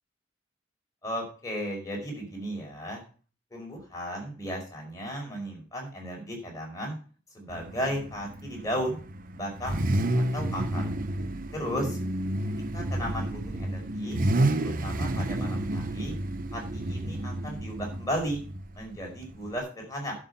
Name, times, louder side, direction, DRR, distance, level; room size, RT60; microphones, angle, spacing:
voice 1, 1.0-3.0 3.5-7.0 7.3-9.0 9.3-9.8 10.3-10.8 11.5-12.0 12.7-14.2 14.6-16.1 16.5-18.4 18.8-20.1, equal, 20° left, 0 dB, 5.2 m, -35 dB
Car / Idling / Accelerating revving vroom, 7.5-19.6, right 1 dB, 50° right, 0.9 m, -30 dB
11.0 x 6.4 x 6.9 m, 0.38 s
head